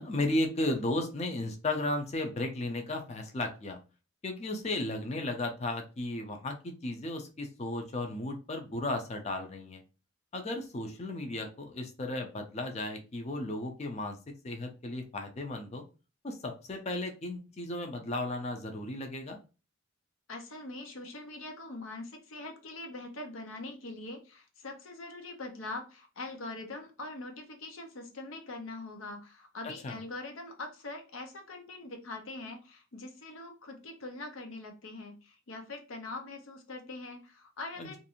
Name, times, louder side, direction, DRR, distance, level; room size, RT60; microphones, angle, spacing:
voice 1, 0.0-3.8 4.2-9.8 10.3-14.2 14.4-15.8 16.2-19.4 29.8-30.0 37.8-38.0, left 2 dB, 30° left, 4 dB, 0.4 m, -34 dB
voice 2, 20.3-38.0, left 2 dB, 75° left, 4 dB, 0.7 m, -43 dB
2.5 x 2.4 x 2.7 m, 0.32 s
head